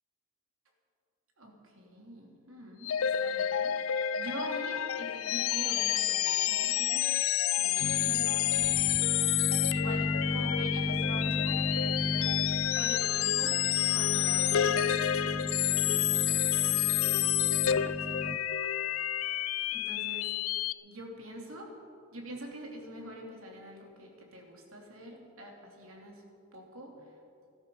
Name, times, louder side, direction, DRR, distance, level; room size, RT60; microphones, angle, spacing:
voice 1, 1.4-7.1 7.6-12.4 12.8-13.6 13.9-18.4 19.7-20.3 20.8-21.7 22.1-26.2 26.5-27.0, equal, 75° right, 0 dB, 2.8 m, -45 dB
sound 1, 2.8-20.7, left 12 dB, 75° left, 0.4 m, -29 dB
sound 2, 7.8-18.4, left 1 dB, 10° left, 0.4 m, -35 dB
18.5 x 13.0 x 5.5 m, 2.6 s
head